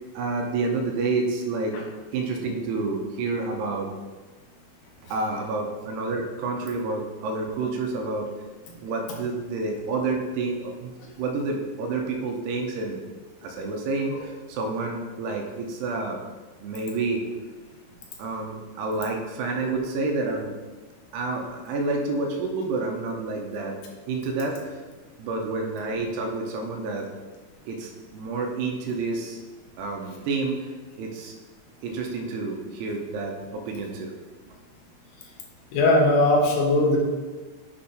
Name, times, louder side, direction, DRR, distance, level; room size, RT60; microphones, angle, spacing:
voice 1, 0.1-1.7 2.1-3.9 5.0-8.3 8.8-13.0 13.4-16.2 16.6-17.2 18.2-20.5 21.1-23.8 24.1-24.8 25.2-27.1 27.7-29.4 29.8-30.7 31.0-31.3 31.8-34.1, right 3 dB, 85° right, 2 dB, 2.8 m, -29 dB
voice 2, 35.7-37.0, left 2 dB, 80° left, -1 dB, 3.2 m, -19 dB
7.7 x 4.3 x 5.0 m, 1.3 s
omnidirectional pair, 4.8 m